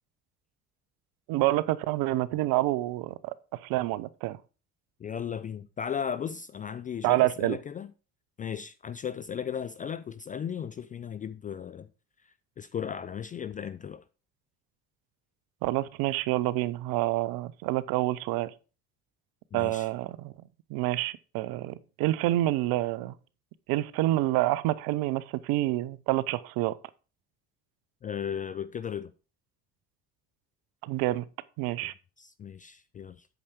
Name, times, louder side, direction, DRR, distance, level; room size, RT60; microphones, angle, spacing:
voice 1, 1.3-3.3 3.6-4.4 7.0-7.6 15.6-18.5 19.5-20.3 20.7-23.1 23.7-26.8 30.8-31.3 31.6-31.9, right 16 dB, 50° right, 0.7 m, -28 dB
voice 2, 5.0-7.9 8.4-11.9 12.6-14.0 19.5-19.9 28.0-29.1 31.8-31.9 32.2-33.3, left 8 dB, 20° left, 0.3 m, -36 dB
8.6 x 7.0 x 4.7 m
figure-of-eight pair, 55°, 45 cm